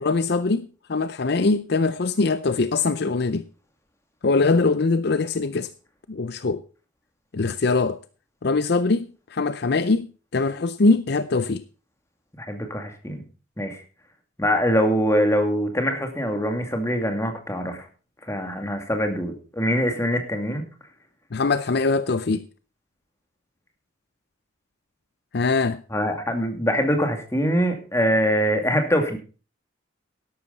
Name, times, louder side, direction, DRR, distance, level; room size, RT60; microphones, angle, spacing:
voice 1, 0.0-3.4 4.2-5.7 6.1-6.6 7.3-8.0 8.4-10.1 10.3-11.6 21.3-22.5 25.3-25.8, left 3 dB, 55° left, 0.6 m, -22 dB
voice 2, 12.5-13.2 13.6-13.8 14.4-17.8 18.3-20.6 25.9-29.2, equal, 15° left, 2.4 m, -23 dB
12.5 x 11.5 x 4.0 m
head